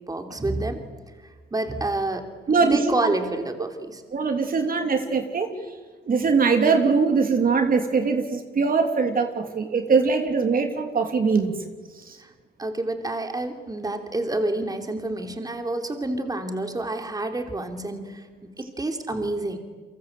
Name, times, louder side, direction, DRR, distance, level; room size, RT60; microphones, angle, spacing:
voice 1, 0.1-0.9 1.5-2.3 2.5-4.0 12.2-12.3 12.6-18.3 18.6-19.6, right 2 dB, 20° right, 5 dB, 3.1 m, -28 dB
voice 2, 2.5-3.1 4.1-5.5 6.1-11.6 12.1-12.2, right 4 dB, 45° right, 5 dB, 3.1 m, -22 dB
29.5 x 24.0 x 7.9 m, 1.4 s
cardioid pair, 90°, 20 cm